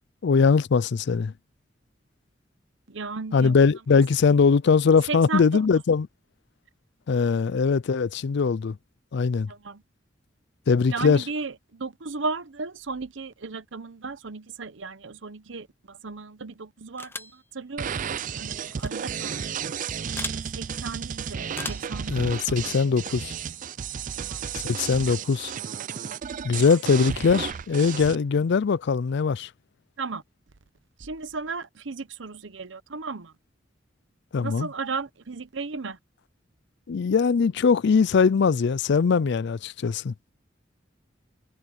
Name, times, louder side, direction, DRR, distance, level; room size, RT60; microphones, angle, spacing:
voice 1, 0.2-1.3 3.3-6.1 7.1-8.8 9.1-9.5 10.7-11.2 22.1-23.3 24.5-25.5 26.4-29.5 34.3-34.7 36.9-40.1, left 5 dB, 65° left, 0.4 m, -21 dB
voice 2, 2.9-3.7 5.1-5.6 9.5-9.8 10.9-19.4 20.5-22.7 24.2-24.4 26.5-26.7 30.0-30.2 31.0-33.3 34.4-36.0, right 4 dB, 75° right, 0.9 m, -35 dB
sound 1, 17.0-17.4 18.7-18.9 20.2-20.4 21.5-21.9, left 3 dB, 10° left, 0.9 m, -36 dB
sound 2, 17.8-28.1, right 7 dB, 45° right, 0.4 m, -33 dB
head